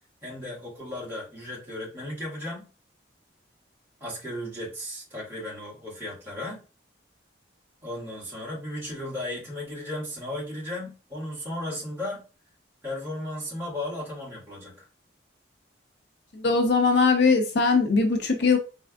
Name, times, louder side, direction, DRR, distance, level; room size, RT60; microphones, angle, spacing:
voice 1, 0.2-2.7 4.0-6.6 7.8-12.2 12.8-14.8, left 1 dB, 10° right, 1.9 m, -35 dB
voice 2, 16.3-18.6, left 4 dB, 60° left, 0.6 m, -21 dB
4.4 x 3.4 x 2.4 m
head